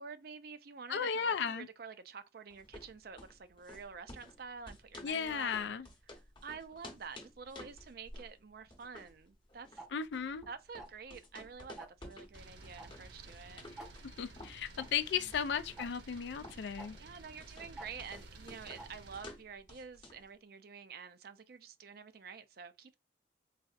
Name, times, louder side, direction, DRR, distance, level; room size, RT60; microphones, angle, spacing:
voice 1, 0.0-5.7 6.1-9.8 10.5-13.6 15.1-15.3 17.0-23.0, right 5 dB, 55° right, 0.5 m, -49 dB
voice 2, 0.9-1.7 5.0-5.8 9.9-10.4 14.2-17.0, left 7 dB, 70° left, 0.4 m, -35 dB
sound 1, 2.5-20.3, left 1 dB, 25° left, 0.9 m, -54 dB
Tick-tock, 9.8-9.9 10.8-11.1 11.8-12.0 12.8-12.9 13.2-13.3 13.8-13.9 14.8-14.9 15.8-15.9 16.8-16.9 17.8-17.9 18.8-18.9, right 2 dB, ahead, 0.6 m, -47 dB
sound 2, 12.3-19.3, right 2 dB, 70° right, 1.0 m, -54 dB
4.0 x 2.6 x 2.4 m
head